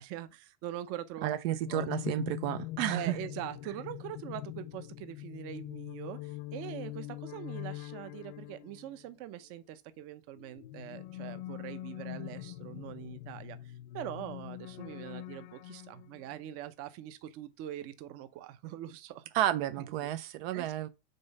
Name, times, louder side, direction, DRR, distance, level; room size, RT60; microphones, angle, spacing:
voice 1, 0.0-1.9 2.3-2.4 2.9-19.3 19.8-20.1 20.5-20.9, right 12 dB, 50° right, 0.8 m, -43 dB
voice 2, 1.2-3.2 19.3-20.9, right 13 dB, 80° right, 0.7 m, -31 dB
sound 1, 1.7-9.1 10.4-16.3, left 16 dB, 60° left, 0.5 m, -43 dB
5.4 x 4.0 x 5.3 m
supercardioid pair, 150°, 30 cm